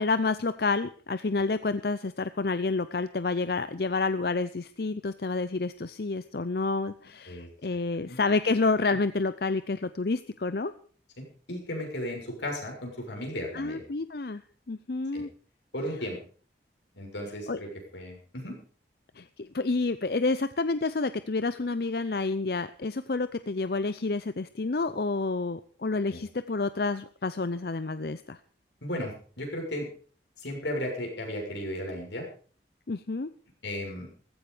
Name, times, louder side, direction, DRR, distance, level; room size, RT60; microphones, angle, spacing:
voice 1, 0.0-10.7 13.5-14.4 14.7-15.3 17.5-17.6 19.2-28.4 32.9-33.3, left 3 dB, 60° left, 13 dB, 0.6 m, -29 dB
voice 2, 11.2-13.8 15.1-15.2 15.7-16.2 16.9-18.6 26.1-26.2 28.8-29.9 30.4-32.2 33.6-34.1, left 1 dB, 85° left, 1 dB, 6.7 m, -35 dB
15.5 x 15.0 x 5.1 m, 0.43 s
head